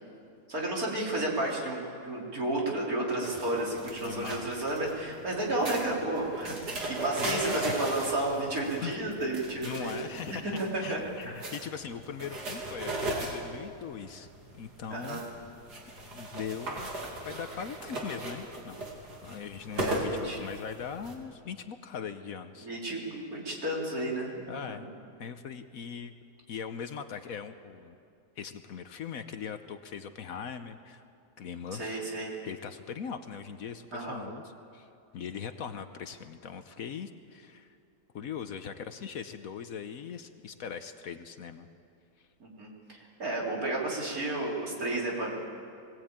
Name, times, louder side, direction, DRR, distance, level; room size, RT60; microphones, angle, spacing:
voice 1, 0.5-6.6 7.0-10.0 10.3-11.0 11.2-11.5 14.9-15.2 19.8-20.4 22.6-24.8 31.8-32.3 33.9-34.2 42.4-45.4, right 1 dB, 60° right, -3 dB, 4.0 m, -32 dB
sound 1, 3.2-21.1, right 1 dB, 75° right, 3.1 m, -38 dB
voice 2, 4.0-4.5 7.2-7.7 8.8-9.0 9.6-14.3 14.6-15.2 16.1-16.9 17.2-18.9 19.2-22.7 24.5-24.9 25.2-26.1 26.5-28.0 28.4-31.0 31.4-32.0 32.4-34.4 34.7-37.8 38.1-41.7, left 7 dB, 65° left, 9 dB, 1.2 m, -40 dB
21.5 x 17.5 x 8.8 m, 2.5 s
omnidirectional pair, 1.7 m